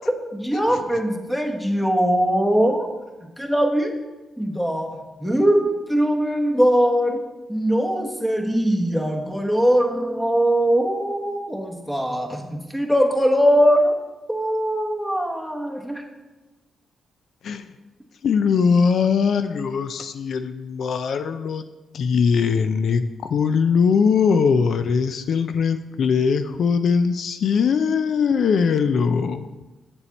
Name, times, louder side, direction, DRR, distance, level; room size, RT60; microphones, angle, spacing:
voice 1, 0.3-2.9 3.4-3.9 4.4-4.9 5.2-7.2 7.5-13.9 14.3-16.0, equal, 5° left, 2 dB, 1.2 m, -21 dB
voice 2, 18.2-21.7 21.9-29.5, left 6 dB, 70° left, 9 dB, 0.4 m, -21 dB
7.0 x 7.0 x 4.1 m, 1.2 s
cardioid pair, 75°, 0 cm